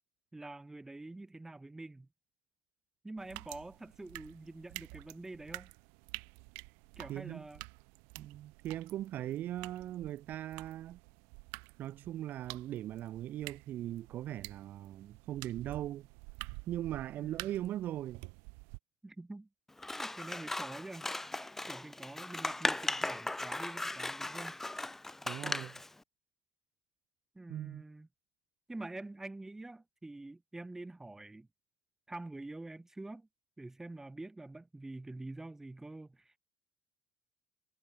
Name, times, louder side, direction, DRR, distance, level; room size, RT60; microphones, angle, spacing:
voice 1, 0.3-2.1 3.0-5.7 7.0-7.6 17.2-17.5 19.0-19.5 19.9-21.1 21.7-24.6 27.3-28.1 28.7-31.5 32.1-33.3 33.6-36.4, right 2 dB, 10° right, 2.8 m, -46 dB
sound 1, 3.2-18.8, right 36 dB, 85° right, 2.7 m, -50 dB
voice 2, 7.1-7.4 8.2-11.0 11.8-16.1 16.7-18.2 25.3-25.8 27.5-27.8, right 13 dB, 60° right, 0.5 m, -39 dB
Scissors, 19.8-25.9, left 2 dB, 10° left, 0.3 m, -37 dB
supercardioid pair, 95°, 4 cm